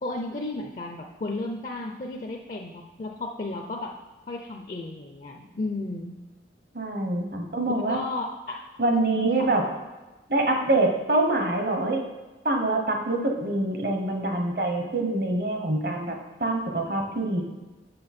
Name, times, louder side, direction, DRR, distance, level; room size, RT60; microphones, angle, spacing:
voice 1, 0.0-3.9 4.3-6.1 7.9-8.6 8.9-9.5, left 2 dB, 45° left, 2 dB, 0.5 m, -34 dB
voice 2, 6.7-8.0 8.8-9.6 10.3-12.0 12.4-17.4, right 2 dB, 55° right, 3 dB, 1.1 m, -25 dB
6.8 x 6.2 x 4.3 m, 1.1 s
head